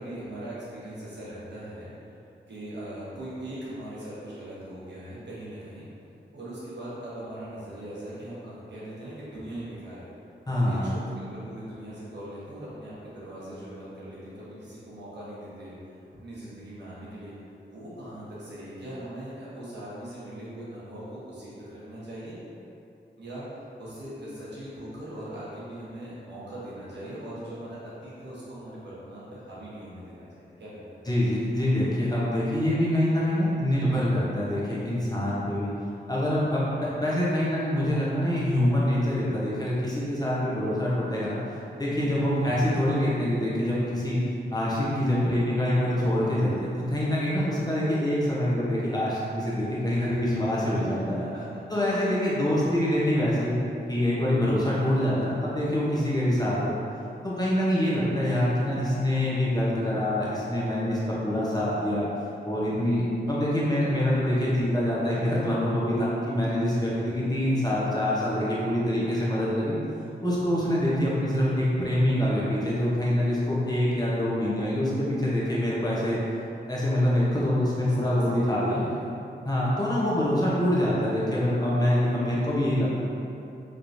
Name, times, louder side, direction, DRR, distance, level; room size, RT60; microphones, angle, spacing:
voice 1, 0.0-1.9 2.5-5.9 6.3-10.1 10.5-15.7 16.1-17.3 17.7-22.4 23.2-23.4 23.8-31.0 41.9-42.6 50.0-51.4 51.9-52.2 66.8-67.1 77.8-79.1, right 1 dB, 70° right, -9 dB, 1.1 m, -40 dB
voice 2, 10.5-10.9 31.1-35.7 36.1-41.4 41.8-44.2 44.5-51.2 51.7-53.6 53.9-56.7 57.2-62.1 62.4-69.7 70.2-76.2 76.7-78.8 79.4-83.0, left 1 dB, 20° left, -8 dB, 0.9 m, -25 dB
3.3 x 3.0 x 2.6 m, 2.7 s
cardioid pair, 60°, 19 cm